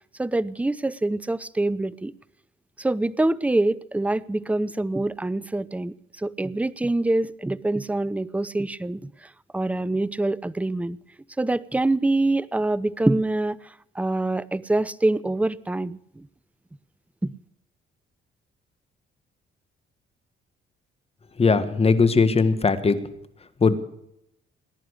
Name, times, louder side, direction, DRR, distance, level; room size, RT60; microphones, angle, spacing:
voice 1, 0.2-2.1 2.8-5.9 6.2-9.1 9.5-11.0 11.4-13.6 14.0-16.0 17.2-17.3, right 2 dB, 5° right, 0.6 m, -25 dB
voice 2, 21.4-23.0 23.6-23.8, left 4 dB, 30° left, 1.6 m, -19 dB
19.5 x 10.5 x 6.5 m
cardioid pair, 90°, 20 cm